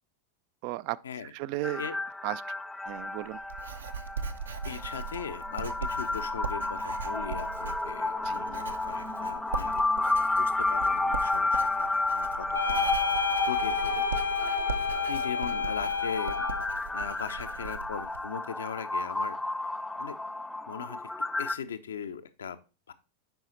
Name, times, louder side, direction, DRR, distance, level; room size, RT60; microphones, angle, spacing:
voice 1, 0.6-1.8 2.2-2.4 2.8-3.4 8.2-8.5, right 17 dB, 45° right, 0.3 m, -35 dB
sound 1, 1.6-21.5, left 2 dB, 5° left, 0.5 m, -32 dB
Writing, 2.9-18.2, right 6 dB, 70° right, 0.7 m, -40 dB
voice 2, 4.6-9.8 10.4-13.2 13.4-14.1 15.1-16.3 16.9-19.4 20.0-20.1 20.7-21.0 21.4-22.6 22.9-23.0, left 7 dB, 65° left, 0.7 m, -39 dB
sound 2, 12.5-16.7, left 6 dB, 85° left, 1.2 m, -30 dB
7.9 x 5.5 x 4.3 m
figure-of-eight pair, 90°, 0 cm